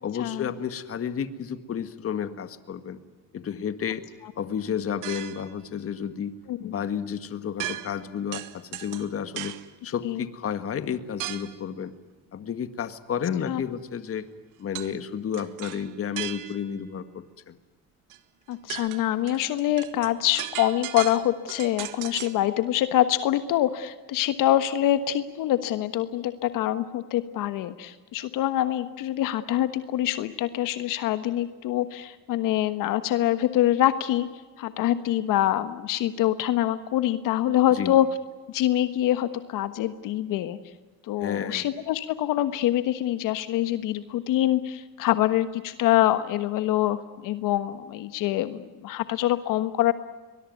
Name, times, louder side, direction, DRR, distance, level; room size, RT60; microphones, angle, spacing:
voice 1, 0.0-3.0 3.3-4.0 4.4-6.3 6.6-9.5 9.8-12.0 12.3-14.3 14.6-17.6 37.7-38.0 41.2-41.7, left 8 dB, 45° left, 11 dB, 1.9 m, -31 dB
sound 1, 5.0-5.5 7.6-8.1 8.3-9.7 11.2-11.6 14.8-15.0 15.3-16.8 18.1-18.2 18.5-22.4, right 14 dB, 75° right, 1.7 m, -37 dB
voice 2, 18.5-34.3 34.6-38.1 38.5-40.6 41.1-49.9, left 13 dB, 80° left, 11 dB, 1.4 m, -25 dB
23.5 x 21.0 x 9.4 m, 1.3 s
cardioid pair, 105°, 32 cm